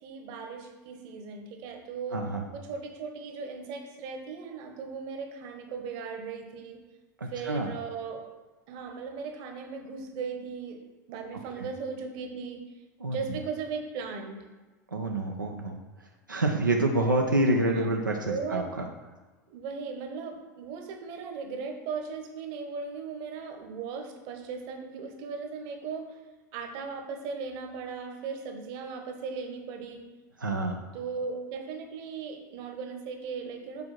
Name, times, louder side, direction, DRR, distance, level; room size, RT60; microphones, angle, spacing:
voice 1, 0.0-2.2 2.5-6.8 7.3-8.2 8.7-10.8 11.1-12.6 13.1-14.4 17.6-18.0 18.3-18.7 19.5-26.2 26.5-30.1 30.9-33.9, right 5 dB, 50° right, 4 dB, 1.4 m, -37 dB
voice 2, 2.1-2.4 7.2-7.7 11.6-11.7 13.0-13.2 14.9-15.8 16.3-18.8 30.4-30.8, right 2 dB, 85° right, 1 dB, 0.8 m, -27 dB
7.2 x 4.6 x 6.1 m, 1.2 s
figure-of-eight pair, 80°, 10 cm